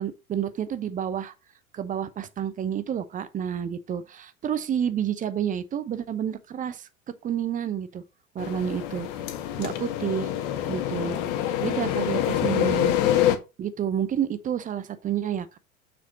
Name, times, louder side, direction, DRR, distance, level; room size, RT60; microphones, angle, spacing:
voice 1, 0.0-1.3 1.7-6.9 7.2-8.0 8.3-9.1 9.6-10.3 10.7-11.2 11.6-13.0 13.6-15.6, right 9 dB, 20° right, 0.7 m, -29 dB
sound 1, 8.4-13.4, left 11 dB, 45° left, 1.4 m, -26 dB
7.0 x 6.1 x 4.0 m
figure-of-eight pair, 85°, 42 cm